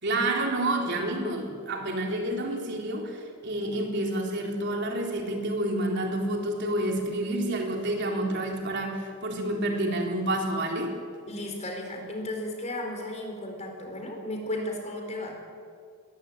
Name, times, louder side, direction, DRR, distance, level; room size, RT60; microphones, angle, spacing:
voice 1, 0.0-11.0, right 1 dB, 55° right, 1 dB, 3.8 m, -29 dB
voice 2, 11.3-15.4, left 1 dB, 30° left, 2 dB, 4.7 m, -34 dB
21.5 x 20.0 x 9.0 m, 2.3 s
head